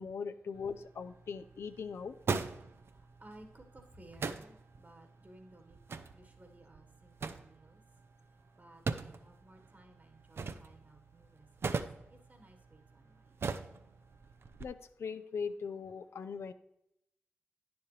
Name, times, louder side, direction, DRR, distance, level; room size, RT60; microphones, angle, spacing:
voice 1, 0.0-2.2 14.6-16.5, left 5 dB, 80° left, 10 dB, 0.4 m, -40 dB
sound 1, 0.5-14.6, right 4 dB, 70° right, 0.5 m, -42 dB
voice 2, 2.7-7.8 8.5-11.8 12.1-13.3, right 1 dB, 40° right, 5 dB, 1.5 m, -58 dB
9.9 x 7.0 x 3.2 m, 0.81 s
cardioid pair, 40°, 4 cm